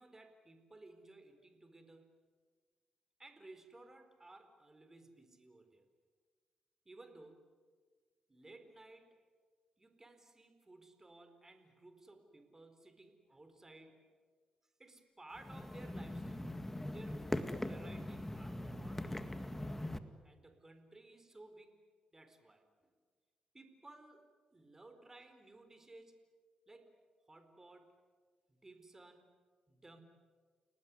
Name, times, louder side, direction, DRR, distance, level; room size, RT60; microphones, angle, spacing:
voice 1, 0.0-2.3 3.2-5.9 6.8-7.6 8.3-9.2 9.8-14.0 14.8-16.5 16.8-19.8 20.2-21.8 22.1-22.9 23.5-24.2 24.5-26.2 26.7-26.9 27.3-28.0 28.5-29.3 29.7-30.0, right 2 dB, 20° right, 7 dB, 4.4 m, -58 dB
sound 1, 15.3-20.0, left 1 dB, 10° left, 1.9 m, -41 dB
30.0 x 19.0 x 9.7 m, 1.5 s
cardioid pair, 80°, 2 cm